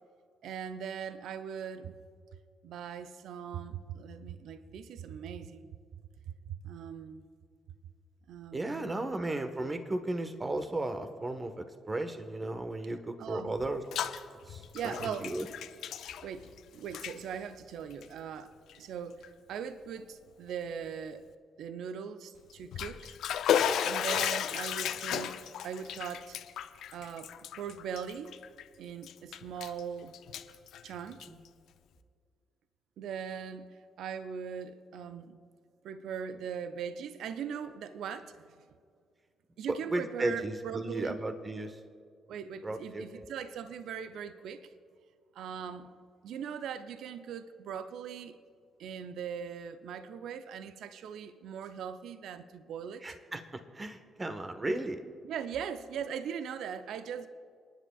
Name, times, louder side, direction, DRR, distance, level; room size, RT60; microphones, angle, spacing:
voice 1, 0.4-1.9 2.6-5.7 6.3-7.2 8.3-9.2 10.4-10.5 13.2-13.5 14.7-15.4 16.2-18.5 18.8-21.3 21.6-23.2 23.8-26.4 26.9-28.4 28.8-30.2 30.8-31.3 33.0-33.7 34.0-35.4 35.8-38.7 39.6-41.2 42.3-44.7 45.3-45.9 46.2-48.4 48.8-53.1 55.2-57.3, right 7 dB, 65° right, 0.5 m, -40 dB
voice 2, 8.5-13.8 14.5-15.5 31.3-31.4 39.9-41.8 42.6-43.2 53.0-55.0, right 2 dB, 30° right, 1.3 m, -35 dB
Bathtub (filling or washing), 13.6-14.2 14.5-16.6 16.9-17.2 17.9-18.1 18.7-18.8 19.2-19.3 22.5-28.6 29.0-29.8 30.1-31.5, left 9 dB, 65° left, 0.5 m, -34 dB
30.0 x 10.0 x 2.4 m
hypercardioid pair, 40°, 0 cm